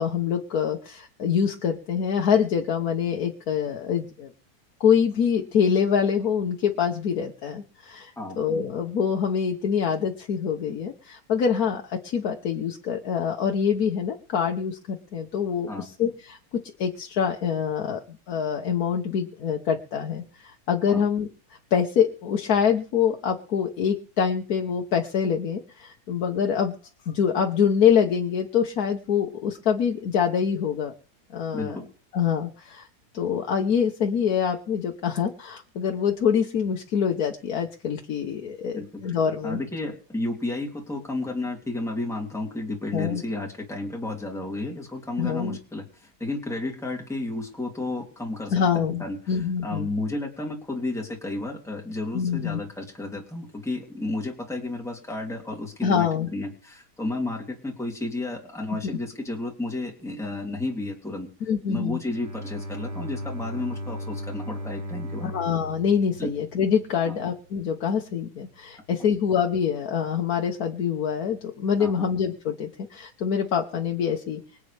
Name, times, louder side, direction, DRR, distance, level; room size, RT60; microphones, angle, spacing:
voice 1, 0.0-4.3 4.8-18.0 18.3-26.7 27.1-30.9 31.3-31.8 32.1-32.9 33.1-39.6 42.9-43.2 45.2-45.6 48.5-49.9 52.1-52.6 55.8-56.3 58.8-59.0 61.5-62.0 65.2-74.4, left 7 dB, 65° left, 3 dB, 1.5 m, -25 dB
voice 2, 31.5-31.9 38.7-39.2 39.4-61.3 61.7-65.3 66.2-66.3 67.1-67.2 71.8-72.0, left 2 dB, ahead, 0 dB, 2.8 m, -32 dB
Bowed string instrument, 62.0-66.9, equal, 85° right, 2.3 m, -36 dB
25.0 x 8.4 x 3.4 m, 0.39 s
omnidirectional pair, 1.8 m